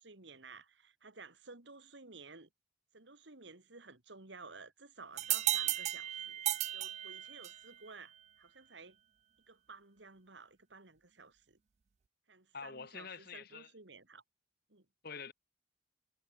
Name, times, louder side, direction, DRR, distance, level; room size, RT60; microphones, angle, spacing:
voice 1, 0.0-2.5 2.9-6.4 6.7-9.0 9.5-11.6 12.3-14.2 14.7-14.9, right 4 dB, 70° right, 2.4 m, -54 dB
sound 1, 5.2-7.7, right 13 dB, 35° right, 0.3 m, -35 dB
voice 2, 12.5-13.7 15.0-15.3, left 5 dB, 55° left, 1.6 m, -46 dB
head